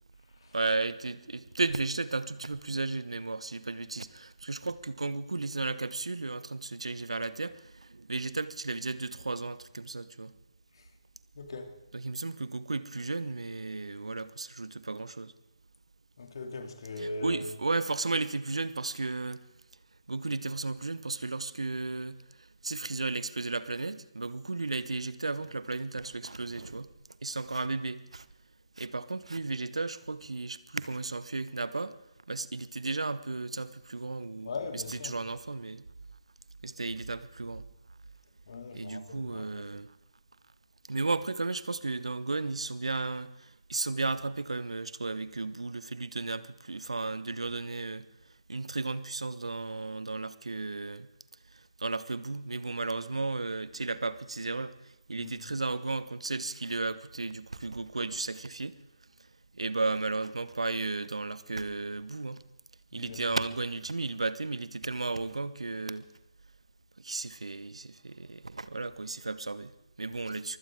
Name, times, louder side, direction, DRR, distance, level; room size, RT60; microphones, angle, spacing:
voice 1, 0.5-10.3 11.9-15.3 17.0-19.4 20.1-26.9 27.2-28.3 28.8-32.0 32.3-35.9 36.6-37.7 38.7-39.9 40.9-48.1 48.5-51.1 51.5-58.8 59.5-62.4 62.9-66.1 67.0-70.6, right 3 dB, 75° right, 1.0 m, -34 dB
voice 2, 11.3-11.7 16.2-17.5 34.4-35.1 38.5-39.7 55.2-55.3 62.9-63.2, left 3 dB, 55° left, 2.5 m, -40 dB
23.5 x 16.5 x 3.7 m
figure-of-eight pair, 140°, 3 cm